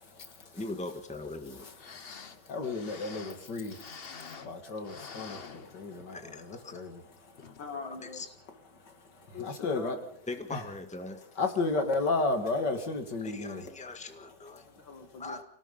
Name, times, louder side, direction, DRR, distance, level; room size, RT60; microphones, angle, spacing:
voice 1, 0.0-0.6 1.6-1.7 2.0-7.6 8.7-10.0 10.5-10.6 11.4-13.7 14.6-14.7, left 3 dB, 60° left, 6 dB, 2.9 m, -34 dB
voice 2, 0.5-1.6 6.1-6.8 8.0-8.3 10.3-11.2 13.2-14.6 15.2-15.4, left 2 dB, 5° left, 6 dB, 1.6 m, -40 dB
sound 1, 1.5-1.6 1.7-4.6 4.8-6.2 6.6-6.7 7.4-7.6 8.1-8.2, left 5 dB, 40° left, 1.1 m, -47 dB
voice 3, 7.6-8.3 9.3-10.2 14.7-15.4, left 5 dB, 80° left, 6 dB, 2.6 m, -43 dB
26.0 x 18.0 x 5.6 m, 0.62 s
omnidirectional pair, 2.1 m